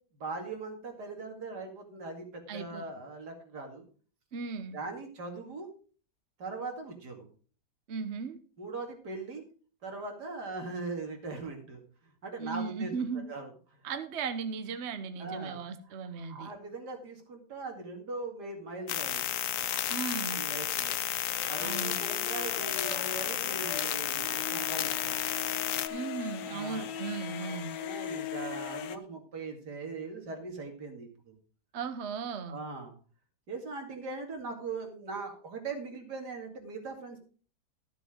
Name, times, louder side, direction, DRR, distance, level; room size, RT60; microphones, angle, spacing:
voice 1, 0.1-3.9 4.7-5.7 6.4-7.3 8.6-9.4 9.8-13.8 15.2-15.6 16.1-19.4 20.3-21.0 21.4-25.3 26.3-26.9 27.3-31.4 32.5-32.9 33.5-37.2, right 3 dB, 70° right, 3 dB, 2.8 m, -40 dB
voice 2, 2.5-2.9 4.3-4.8 7.9-8.4 12.4-13.3 13.8-16.5 19.9-20.4 21.6-22.0 25.9-27.8 31.7-32.6, right 5 dB, 50° right, 9 dB, 1.0 m, -36 dB
sound 1, 18.9-25.9, left 11 dB, 60° left, 0.9 m, -32 dB
sound 2, 21.2-29.0, left 9 dB, 90° left, 1.5 m, -40 dB
13.0 x 6.9 x 5.1 m, 0.41 s
omnidirectional pair, 1.8 m